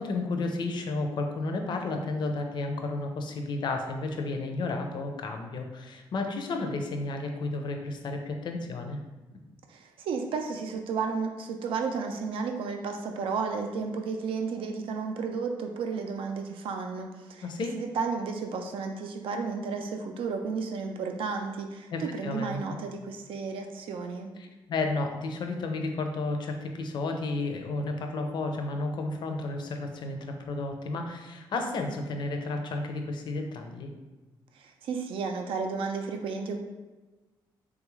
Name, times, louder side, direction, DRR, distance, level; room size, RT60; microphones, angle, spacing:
voice 1, 0.0-9.0 17.4-17.7 21.9-22.6 24.4-33.9, left 3 dB, 60° left, 4 dB, 0.4 m, -32 dB
voice 2, 9.7-17.5 17.7-24.3 34.5-36.6, right 5 dB, 85° right, 4 dB, 0.4 m, -33 dB
3.5 x 2.4 x 3.0 m, 1.2 s
wide cardioid pair, 140°, 9 cm